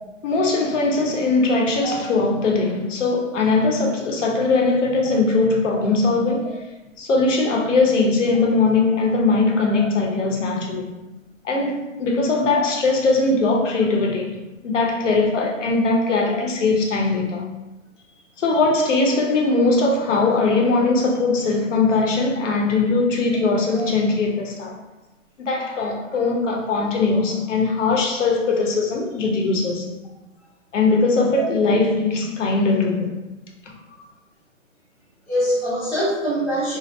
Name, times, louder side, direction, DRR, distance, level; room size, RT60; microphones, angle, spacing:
voice 1, 0.2-6.5 7.0-10.9 11.4-14.4 14.6-17.5 18.4-24.8 25.4-29.9 30.7-33.1, left 3 dB, 65° left, 0 dB, 0.8 m, -20 dB
voice 2, 35.3-36.8, equal, ahead, -17 dB, 0.5 m, -24 dB
2.9 x 2.6 x 3.1 m, 1.1 s
hypercardioid pair, 150°, 39 cm